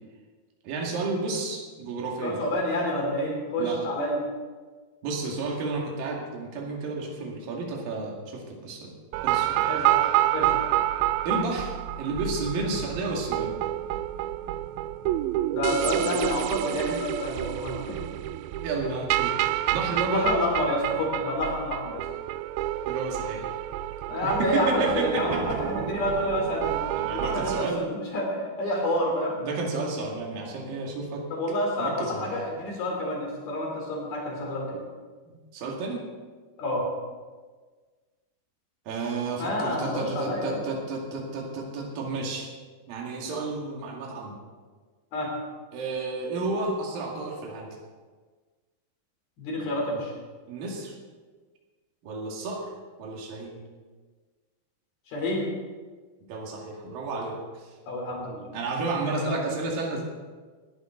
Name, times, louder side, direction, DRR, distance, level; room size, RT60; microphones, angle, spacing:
voice 1, 0.6-2.4 3.6-3.8 5.0-8.9 9.2-9.7 11.3-13.5 16.9-17.0 18.6-20.3 22.9-23.5 24.2-25.6 27.0-27.8 29.4-31.2 31.8-32.4 35.3-36.0 38.9-42.5 42.9-44.4 45.7-47.8 50.5-51.0 52.0-52.7 53.0-53.6 56.3-57.7 58.5-60.0, right 3 dB, 65° right, -1 dB, 3.9 m, -32 dB
voice 2, 2.2-4.2 9.7-10.6 15.5-18.0 20.1-22.1 24.1-26.8 27.1-29.4 31.3-34.8 36.6-36.9 39.4-40.7 45.1-45.3 49.4-50.1 55.1-55.5 57.9-58.5 59.1-59.4, left 1 dB, 70° left, -1 dB, 5.6 m, -28 dB
sound 1, 9.1-27.6, right 14 dB, 80° right, 2.2 m, -28 dB
19.5 x 13.5 x 3.9 m, 1.4 s
omnidirectional pair, 4.4 m